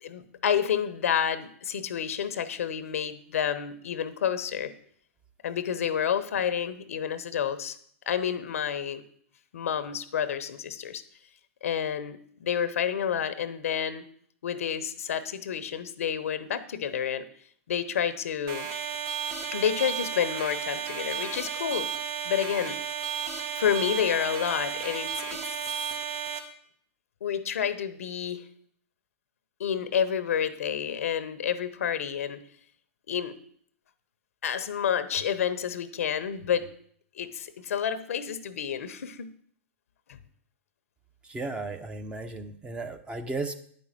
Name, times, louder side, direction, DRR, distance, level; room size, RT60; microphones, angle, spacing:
voice 1, 0.0-4.7 5.4-7.8 8.1-9.0 9.5-11.0 11.6-14.0 14.4-17.2 17.7-18.7 19.5-21.9 22.2-22.8 23.6-25.7 27.2-28.4 29.6-32.4 33.1-33.3 34.4-36.7 37.2-39.3 40.1-40.2, left 8 dB, 80° left, 12 dB, 0.9 m, -29 dB
sound 1, 18.5-26.4, right 7 dB, 40° right, 1.5 m, -33 dB
voice 2, 41.2-43.5, right 3 dB, 15° right, 8 dB, 0.9 m, -35 dB
9.6 x 5.4 x 7.4 m, 0.62 s
hypercardioid pair, 125°, 8 cm